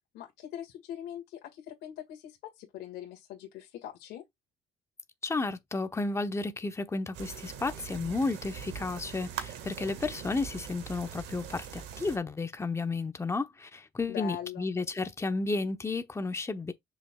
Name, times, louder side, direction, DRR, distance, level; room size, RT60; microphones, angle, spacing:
voice 1, 0.1-4.2 14.1-14.6, left 11 dB, 85° left, 2.0 m, -42 dB
voice 2, 5.2-16.7, left 3 dB, 15° left, 0.9 m, -32 dB
sound 1, 7.1-12.2, right 8 dB, 85° right, 1.9 m, -42 dB
6.9 x 5.7 x 2.4 m
cardioid pair, 110°, 17 cm